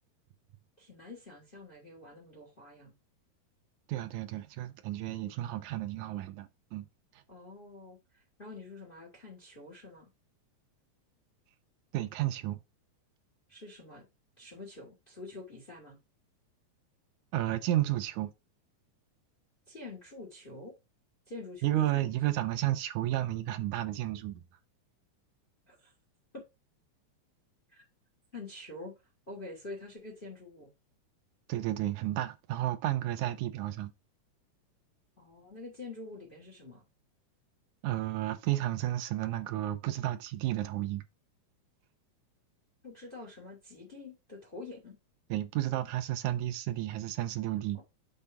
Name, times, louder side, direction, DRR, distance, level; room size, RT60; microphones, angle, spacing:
voice 1, 0.8-2.9 7.3-10.1 13.5-14.1 14.4-16.0 19.7-20.7 21.3-22.2 25.7-25.9 26.3-26.4 27.7-27.8 28.3-29.0 29.3-30.7 35.2-36.8 42.8-45.0, left 2 dB, 20° left, 2.2 m, -46 dB
voice 2, 3.9-6.9 7.1-7.2 11.9-12.6 17.3-18.3 21.6-24.4 31.5-33.9 37.8-41.0 45.3-47.8, right 14 dB, 85° right, 2.2 m, -32 dB
6.6 x 3.4 x 5.6 m
omnidirectional pair, 3.4 m